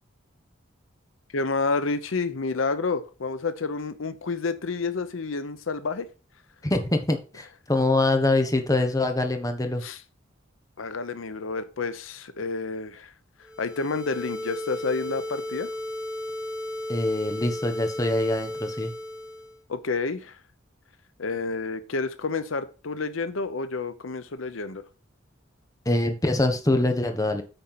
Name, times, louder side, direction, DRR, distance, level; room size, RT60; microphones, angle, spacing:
voice 1, 1.3-6.1 9.8-10.0 10.8-13.1 13.6-15.7 19.7-20.4 21.2-24.8, left 4 dB, 85° left, 12 dB, 0.8 m, -29 dB
voice 2, 6.6-9.8 16.9-18.9 25.8-27.4, left 2 dB, 20° left, 6 dB, 1.1 m, -24 dB
sound 1, 13.4-19.6, left 1 dB, 5° right, 2.0 m, -34 dB
9.0 x 4.3 x 5.7 m, 0.34 s
head